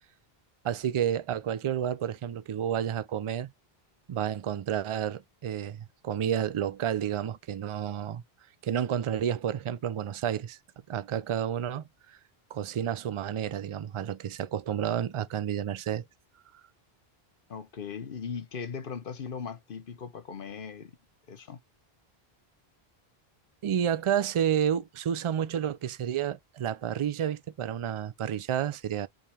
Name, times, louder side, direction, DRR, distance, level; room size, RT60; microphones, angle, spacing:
voice 1, 0.6-3.5 4.1-8.2 8.6-10.6 10.9-12.2 12.5-16.0 23.6-29.1, right 9 dB, 55° right, 0.3 m, -30 dB
voice 2, 17.5-20.9 21.3-21.6, left 6 dB, 60° left, 1.0 m, -38 dB
5.4 x 2.9 x 3.4 m
omnidirectional pair, 1.0 m